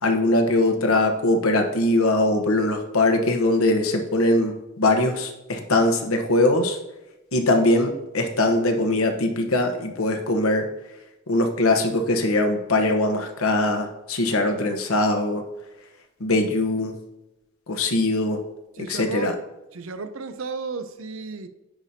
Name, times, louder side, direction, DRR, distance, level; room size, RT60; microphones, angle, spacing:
voice 1, 0.0-6.8 7.3-10.6 11.3-15.4 16.2-16.9 17.7-18.4 18.8-19.3, left 2 dB, 90° left, 4 dB, 1.0 m, -21 dB
voice 2, 18.7-19.4 19.7-21.5, right 4 dB, 75° right, 10 dB, 0.6 m, -33 dB
10.0 x 5.0 x 2.8 m, 0.96 s
head